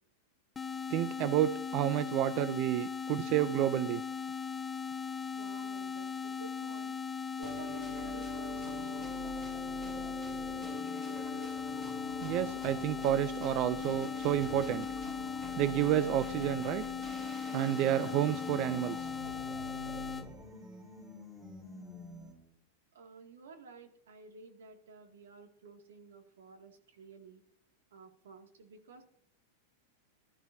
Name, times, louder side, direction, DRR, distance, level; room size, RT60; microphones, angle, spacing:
sound 1, 0.5-20.3, left 6 dB, 15° left, 0.8 m, -38 dB
voice 1, 0.9-4.0 12.2-14.9 15.6-16.8 17.5-19.1, right 13 dB, 45° right, 14 dB, 0.5 m, -30 dB
voice 2, 5.3-7.0 7.4-11.5 22.9-27.4 27.9-29.0, right 4 dB, 85° right, 4 dB, 2.3 m, -53 dB
sound 2, 7.4-22.5, equal, 25° right, 3.8 m, -46 dB
19.5 x 13.0 x 2.8 m, 0.65 s
hypercardioid pair, 130°, 0 cm